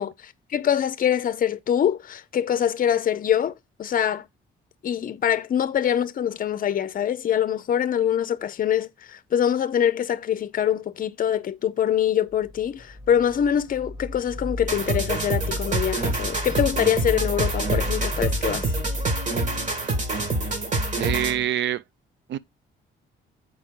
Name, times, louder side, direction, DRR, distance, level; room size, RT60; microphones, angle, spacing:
voice 1, 0.0-3.5 3.8-4.2 4.8-18.7, left 9 dB, 45° left, 0.6 m, -24 dB
sound 1, 12.3-19.1, left 1 dB, 15° right, 1.4 m, -34 dB
sound 2, 14.7-21.5, right 2 dB, 40° right, 1.7 m, -26 dB
voice 2, 21.0-21.8 22.3-22.4, right 11 dB, 65° right, 0.4 m, -25 dB
7.2 x 4.7 x 3.7 m
cardioid pair, 90°, 20 cm